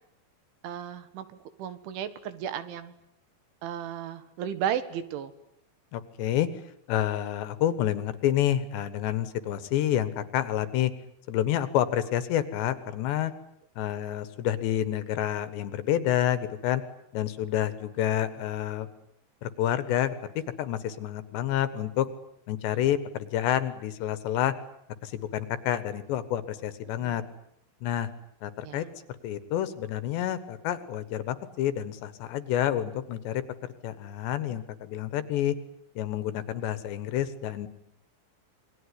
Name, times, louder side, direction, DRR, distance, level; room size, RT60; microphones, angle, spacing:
voice 1, 0.6-2.9 3.6-5.3 27.0-27.2 28.6-28.9, right 9 dB, 75° right, 12 dB, 4.0 m, -34 dB
voice 2, 5.9-6.5 6.9-10.9 11.3-13.3 13.8-16.8 17.1-18.9 19.4-20.1 20.6-22.1 22.5-24.5 25.0-27.2 27.8-28.1 28.4-28.9 29.2-33.4 33.8-35.5 36.0-37.7, left 11 dB, 70° left, 13 dB, 3.4 m, -28 dB
27.5 x 22.0 x 9.9 m, 0.73 s
omnidirectional pair, 5.7 m